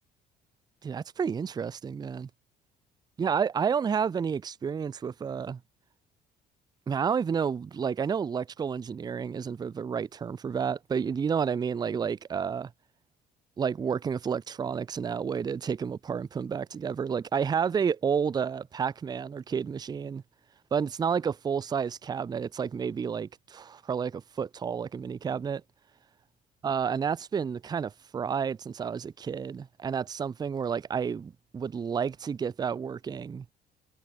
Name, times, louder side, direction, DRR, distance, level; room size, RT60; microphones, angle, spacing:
voice 1, 0.8-2.3 3.2-5.6 6.9-12.7 13.6-20.2 20.7-25.6 26.6-33.4, right 6 dB, 25° right, 0.5 m, -30 dB
cardioid pair, 110°, 17 cm